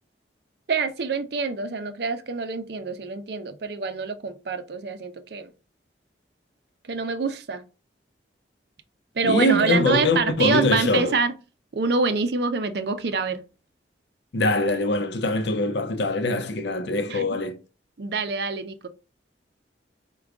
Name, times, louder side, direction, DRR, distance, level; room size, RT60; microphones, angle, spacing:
voice 1, 0.7-5.5 6.9-7.6 9.2-11.3 11.7-13.4 17.1-17.2 18.0-18.9, right 4 dB, 60° right, 0.5 m, -26 dB
voice 2, 9.2-11.2 14.3-17.6, left 1 dB, 70° left, 0.6 m, -23 dB
4.8 x 2.2 x 3.5 m
head